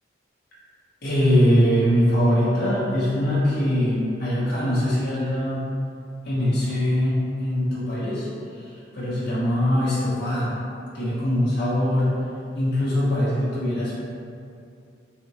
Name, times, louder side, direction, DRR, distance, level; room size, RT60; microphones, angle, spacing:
voice 1, 1.0-5.7 6.2-8.3 8.5-10.5 10.9-12.1 12.5-13.9, equal, 55° left, -11 dB, 1.0 m, -22 dB
3.3 x 2.8 x 2.9 m, 2.5 s
head